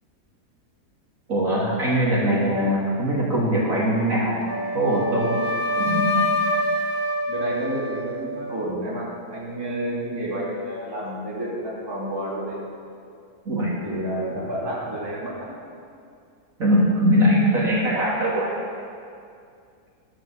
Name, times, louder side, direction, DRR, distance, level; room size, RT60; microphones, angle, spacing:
voice 1, 1.3-4.4 4.7-5.4 5.8-6.2 13.5-13.7 16.6-18.5, equal, 60° right, -6 dB, 3.6 m, -21 dB
Wind instrument woodwind instrument, 4.5-8.6, left 1 dB, 25° left, 0.5 m, -25 dB
voice 2, 7.3-12.6 13.8-15.6, right 1 dB, 15° right, -7 dB, 2.8 m, -30 dB
13.0 x 10.0 x 7.5 m, 2.4 s
omnidirectional pair, 1.7 m